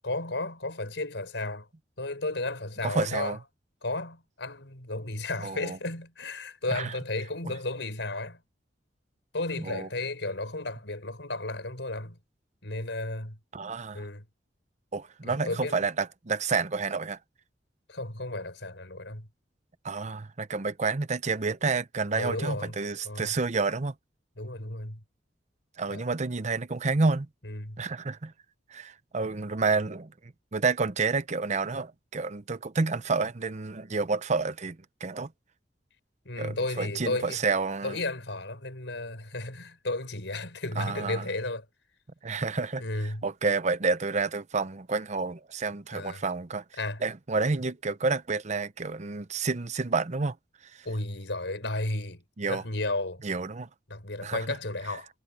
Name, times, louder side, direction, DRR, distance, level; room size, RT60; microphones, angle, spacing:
voice 1, 0.0-1.7 2.0-3.4 3.8-8.4 9.3-12.2 12.6-13.4 13.9-14.2 15.3-15.8 17.9-19.3 22.2-22.7 23.0-23.3 24.4-25.0 25.9-26.0 27.4-27.8 36.2-37.4 37.8-41.6 42.8-43.2 45.9-46.2 46.8-47.0 50.8-52.2 52.5-53.2 53.9-55.1, left 2 dB, 80° left, 4.7 m, -33 dB
voice 2, 2.8-3.4 5.4-5.8 6.7-6.9 7.4-7.5 9.6-9.9 13.5-14.0 14.9-17.2 19.8-23.9 25.8-27.3 27.8-28.3 28.7-35.3 36.4-38.0 40.8-41.3 42.2-46.6 47.0-50.4 52.4-52.6 53.2-53.7 54.2-54.6, right 4 dB, 40° right, 0.7 m, -29 dB
head